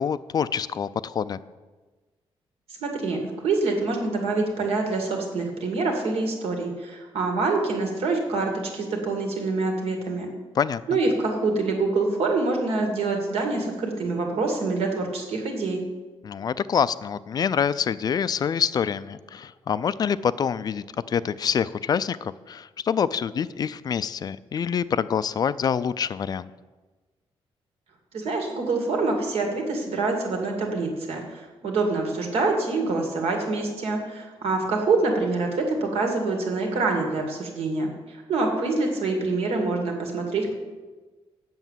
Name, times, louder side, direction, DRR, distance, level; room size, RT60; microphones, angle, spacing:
voice 1, 0.0-1.4 10.6-10.8 16.2-26.5, left 7 dB, 40° left, 16 dB, 0.3 m, -26 dB
voice 2, 2.8-10.3 10.9-15.8 28.1-40.5, right 3 dB, 75° right, 2 dB, 2.2 m, -26 dB
8.1 x 7.1 x 7.4 m, 1.3 s
wide cardioid pair, 145°, 10 cm